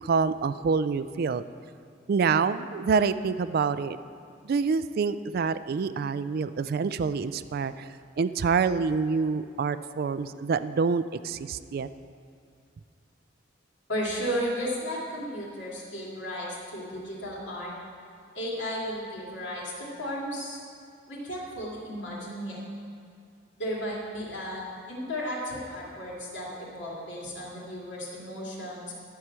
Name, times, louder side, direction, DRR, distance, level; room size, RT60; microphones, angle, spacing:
voice 1, 0.0-1.4 2.1-4.0 4.4-7.7 8.2-11.9, right 5 dB, 55° right, 14 dB, 0.3 m, -26 dB
voice 2, 13.9-17.7 18.3-20.6 21.1-22.6 23.6-28.9, equal, 70° left, -5 dB, 2.7 m, -34 dB
12.5 x 4.8 x 7.4 m, 2.3 s
head